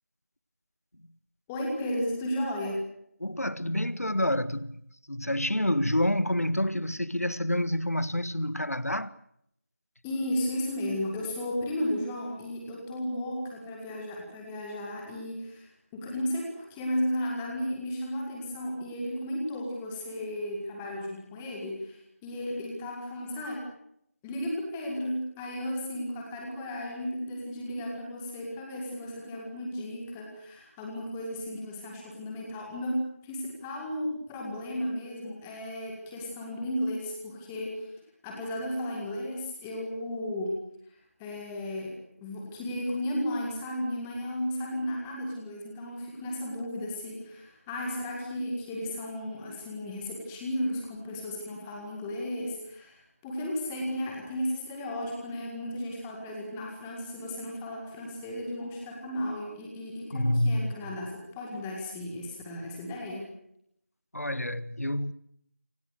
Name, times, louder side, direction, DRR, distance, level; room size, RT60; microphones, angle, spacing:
voice 1, 1.5-2.8 10.0-23.7 24.2-37.9 38.2-40.6 41.2-63.3, left 1 dB, 5° left, 1.9 m, -34 dB
voice 2, 3.2-4.8 5.1-9.1 60.1-61.0 64.1-65.1, left 1 dB, 75° left, 1.7 m, -28 dB
28.0 x 25.5 x 6.5 m
figure-of-eight pair, 170°, 8 cm